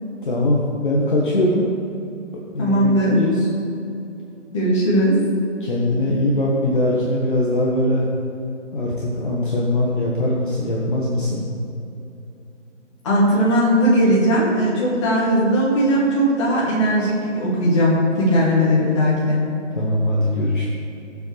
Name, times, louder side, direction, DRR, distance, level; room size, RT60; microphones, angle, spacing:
voice 1, 0.2-1.7 2.5-3.4 5.6-8.1 8.7-11.5 19.7-20.7, left 1 dB, 40° left, -4 dB, 1.5 m, -21 dB
voice 2, 2.6-3.2 4.5-5.1 13.0-19.4, equal, 25° left, -7 dB, 2.5 m, -18 dB
20.0 x 7.3 x 3.4 m, 2.8 s
figure-of-eight pair, 155°, 37 cm